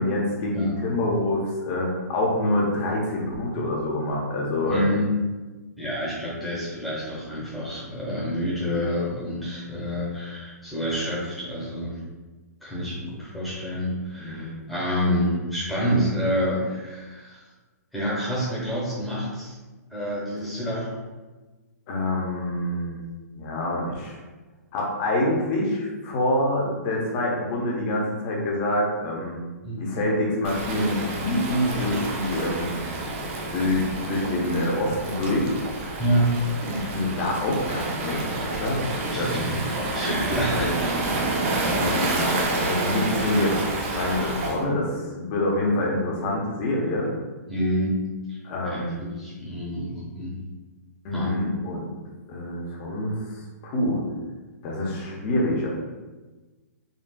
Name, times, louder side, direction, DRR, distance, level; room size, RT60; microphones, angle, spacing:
voice 1, 0.0-4.9 14.2-14.5 21.9-23.0 23.3-24.2 24.7-29.4 29.8-32.7 33.5-35.5 36.7-39.4 40.5-40.7 41.8-47.1 48.4-49.0 51.0-51.9 52.3-54.0 54.6-55.7, left 1 dB, 35° left, -2 dB, 0.8 m, -26 dB
voice 2, 4.7-5.1 5.8-12.0 12.6-17.4 17.9-19.5 19.9-20.9 29.6-29.8 31.6-31.8 36.0-36.4 39.0-39.6 39.9-41.9 47.5-48.0 48.3-48.4 48.6-50.4 51.1-51.3, equal, ahead, -8 dB, 1.0 m, -28 dB
Waves surf, 30.4-44.6, right 2 dB, 45° right, 0.6 m, -29 dB
3.8 x 2.3 x 2.2 m, 1.2 s
hypercardioid pair, 140°, 9 cm